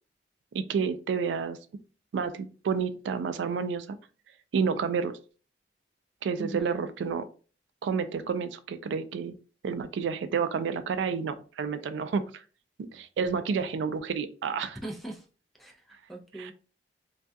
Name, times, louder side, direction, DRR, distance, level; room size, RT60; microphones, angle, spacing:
voice 1, 0.5-1.6 2.1-4.0 4.5-5.2 6.2-7.2 7.8-9.3 9.6-12.2 12.9-14.8 16.4-16.5, right 6 dB, 90° right, 13 dB, 0.3 m, -30 dB
voice 2, 6.4-6.8 14.8-15.3 15.6-16.5, right 1 dB, ahead, 2 dB, 0.4 m, -40 dB
2.3 x 2.2 x 2.6 m, 0.37 s
head